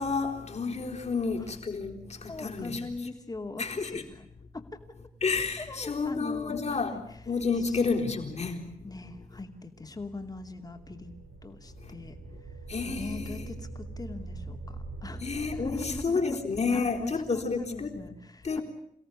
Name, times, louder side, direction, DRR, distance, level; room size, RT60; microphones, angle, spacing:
voice 1, 0.0-1.9 2.2-2.9 3.6-4.0 5.2-7.0 7.3-8.6 12.7-13.6 15.2-17.9 18.4-18.6, left 4 dB, 45° left, 3.9 m, -30 dB
voice 2, 2.3-4.3 4.5-4.6 5.6-7.0 7.6-7.8 8.8-11.1 11.4-12.1 12.4-12.6 12.9-15.3 15.5-16.4 16.7-18.6, left 3 dB, 25° left, 2.7 m, -41 dB
sound 1, 9.9-16.0, right 2 dB, 85° right, 4.3 m, -43 dB
28.5 x 17.5 x 9.9 m
wide cardioid pair, 130°, 16 cm